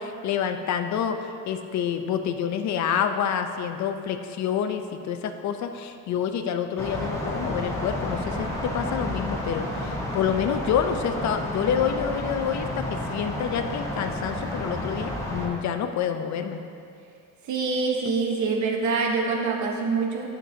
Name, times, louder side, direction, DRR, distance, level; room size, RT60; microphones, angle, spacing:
voice 1, 0.0-8.5 8.7-16.6, left 8 dB, 60° left, 7 dB, 0.6 m, -28 dB
sound 1, 6.8-15.5, left 1 dB, 10° left, 1.1 m, -31 dB
voice 2, 17.5-20.3, right 4 dB, 60° right, 1 dB, 1.0 m, -25 dB
9.9 x 6.7 x 2.7 m, 2.4 s
cardioid pair, 135°, 32 cm